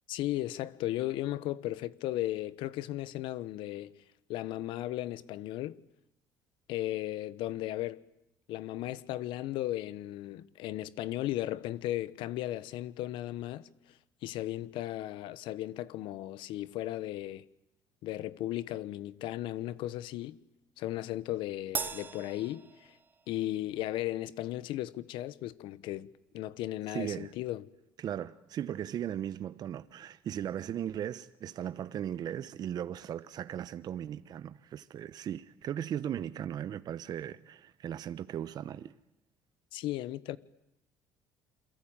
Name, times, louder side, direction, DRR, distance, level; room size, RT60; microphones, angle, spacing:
voice 1, 0.1-3.9 4.3-5.8 6.7-8.0 8.5-14.0 14.2-17.4 18.0-20.4 20.8-23.0 23.3-27.6 39.7-40.4, left 14 dB, 75° left, 1.3 m, -36 dB
Crash cymbal, 21.7-23.4, right 4 dB, 20° right, 1.1 m, -39 dB
voice 2, 26.9-27.3 28.0-38.9, right 10 dB, 50° right, 1.0 m, -37 dB
28.5 x 23.0 x 9.0 m
cardioid pair, 105°, 9 cm